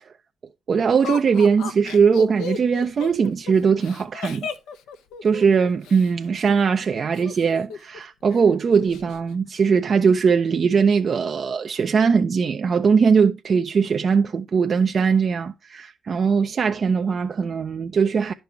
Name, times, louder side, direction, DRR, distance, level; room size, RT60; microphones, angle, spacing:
voice 1, 0.7-4.5 5.2-18.3, right 6 dB, 45° right, 0.5 m, -20 dB
Laughter, 1.0-6.1 7.1-8.0 8.3-8.4 8.7-9.2, left 6 dB, 90° left, 0.8 m, -34 dB
10.5 x 5.4 x 4.4 m
cardioid pair, 90°, 0 cm